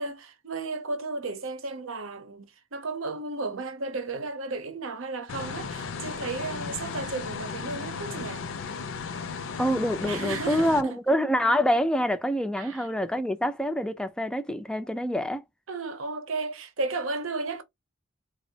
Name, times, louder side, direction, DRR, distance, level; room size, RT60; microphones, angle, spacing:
voice 1, 0.0-8.5 10.0-11.0 12.6-12.9 15.7-17.6, right 3 dB, 80° right, 0.7 m, -34 dB
sound 1, 5.3-10.8, left 5 dB, 70° left, 0.5 m, -35 dB
voice 2, 9.6-15.4, equal, 5° left, 0.3 m, -26 dB
3.4 x 2.0 x 2.7 m
head